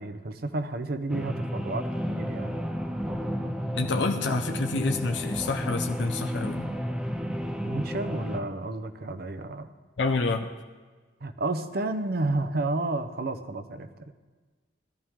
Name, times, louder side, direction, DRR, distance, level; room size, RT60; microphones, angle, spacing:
voice 1, 0.0-2.6 7.6-9.7 11.2-14.1, right 2 dB, 60° right, 9 dB, 0.8 m, -31 dB
sound 1, 1.1-8.4, equal, 5° right, 0.8 m, -32 dB
voice 2, 3.7-6.7 10.0-10.5, left 3 dB, 85° left, 5 dB, 0.7 m, -28 dB
18.0 x 12.5 x 3.7 m, 1.4 s
head